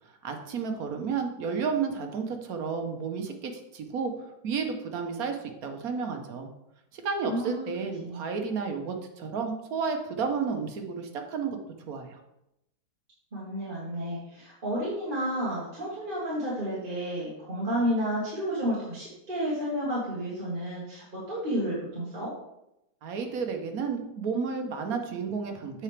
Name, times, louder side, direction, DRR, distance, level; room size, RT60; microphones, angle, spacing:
voice 1, 0.2-6.5 6.9-11.6 11.9-12.2 23.0-25.8, right 5 dB, 65° right, 4 dB, 1.3 m, -32 dB
voice 2, 7.2-7.7 8.0-8.2 13.3-22.3, equal, 30° right, -8 dB, 1.7 m, -31 dB
8.0 x 5.8 x 3.3 m, 0.85 s
omnidirectional pair, 1.7 m